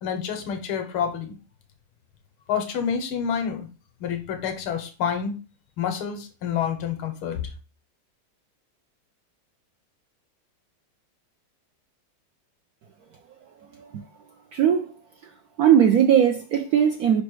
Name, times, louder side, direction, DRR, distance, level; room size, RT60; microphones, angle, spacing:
voice 1, 0.0-1.4 2.5-3.7 4.0-5.4 5.8-7.4, left 7 dB, 85° left, 1.8 m, -28 dB
voice 2, 14.5-14.9 15.6-17.2, right 9 dB, 75° right, 0.8 m, -19 dB
5.2 x 4.1 x 4.6 m
omnidirectional pair, 2.2 m